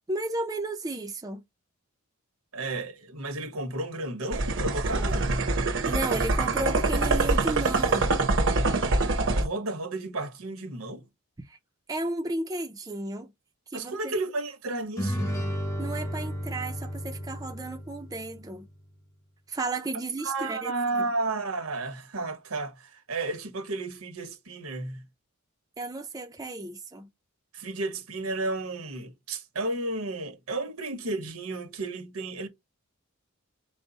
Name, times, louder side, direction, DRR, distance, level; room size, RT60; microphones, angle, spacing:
voice 1, 0.1-1.4 5.8-8.1 11.4-11.6 11.9-13.3 13.7-14.1 15.8-18.7 19.5-21.1 25.8-27.1, right 2 dB, 15° right, 0.5 m, -33 dB
voice 2, 2.5-5.6 9.2-11.0 13.7-15.3 20.2-25.0 27.5-32.5, right 2 dB, 85° right, 1.2 m, -33 dB
sound 1, 4.3-9.5, right 3 dB, 60° right, 0.8 m, -25 dB
sound 2, 15.0-18.6, equal, 15° left, 0.9 m, -33 dB
5.2 x 2.1 x 4.0 m
head